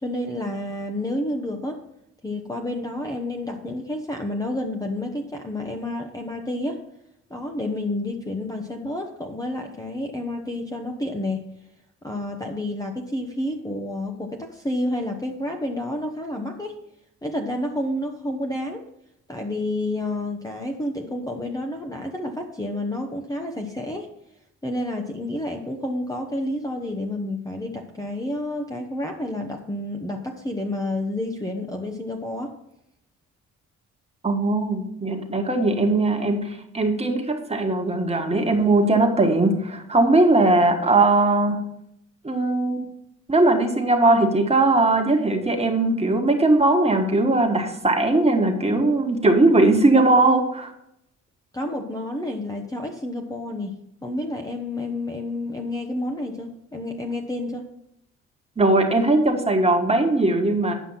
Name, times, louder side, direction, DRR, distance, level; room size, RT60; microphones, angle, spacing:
voice 1, 0.0-1.8 2.2-6.8 7.3-11.4 12.0-16.8 17.2-18.8 19.3-24.1 24.6-32.5 51.5-57.7, left 1 dB, 10° left, 2 dB, 0.9 m, -30 dB
voice 2, 34.2-41.7 42.2-42.9 43.3-50.7 58.6-60.7, right 2 dB, 20° right, 3 dB, 1.5 m, -19 dB
9.5 x 5.5 x 5.7 m, 0.77 s
cardioid pair, 90°, 30 cm